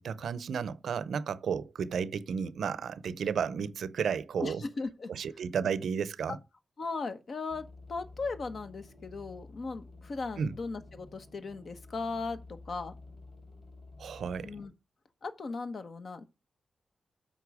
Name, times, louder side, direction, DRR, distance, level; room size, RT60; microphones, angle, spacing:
voice 1, 0.0-4.6 5.1-6.4 10.4-10.6 14.0-14.5, right 6 dB, 90° right, 0.6 m, -33 dB
voice 2, 4.4-5.1 6.3-6.4 6.8-12.9 14.4-14.7 15.2-16.2, left 3 dB, 60° left, 1.1 m, -37 dB
sound 1, 7.5-14.7, left 2 dB, 35° left, 4.0 m, -51 dB
8.4 x 5.4 x 4.9 m
cardioid pair, 90°, 0 cm